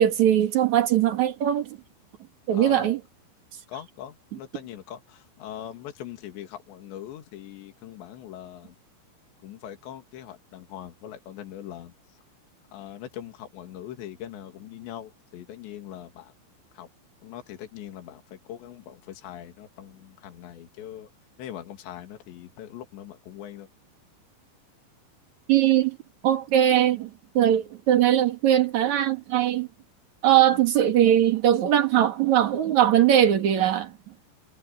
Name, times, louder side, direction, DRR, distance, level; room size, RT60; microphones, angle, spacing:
voice 1, 0.0-1.8 2.5-3.0 25.5-26.0 26.2-29.7 30.2-34.0, right 11 dB, 55° right, 2.5 m, -20 dB
voice 2, 2.5-2.9 3.7-8.8 9.4-12.2 12.7-16.3 16.7-16.9 17.2-21.1 21.4-23.7 30.5-30.6, left 11 dB, 70° left, 4.4 m, -41 dB
omnidirectional pair, 5.4 m